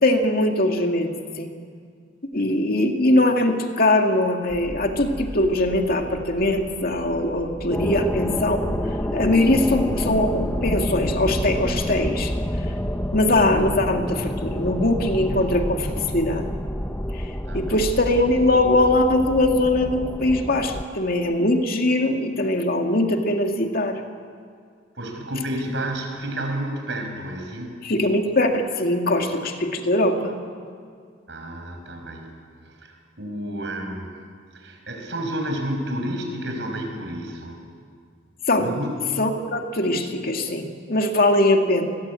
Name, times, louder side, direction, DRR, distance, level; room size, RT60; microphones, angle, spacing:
voice 1, 0.0-1.1 1.4-1.5 2.3-8.7 9.1-12.3 13.1-16.5 17.1-17.3 17.5-24.0 27.8-30.3 38.5-38.7 39.2-41.8, left 1 dB, 55° left, 4 dB, 2.3 m, -21 dB
sound 1, 4.5-20.8, equal, 10° left, 1.2 m, -29 dB
voice 2, 17.5-17.8 25.0-27.7 31.3-32.4 32.7-34.1 34.5-37.6 38.6-39.2, right 1 dB, 70° right, 3 dB, 5.8 m, -30 dB
28.5 x 21.5 x 8.4 m, 2.1 s
head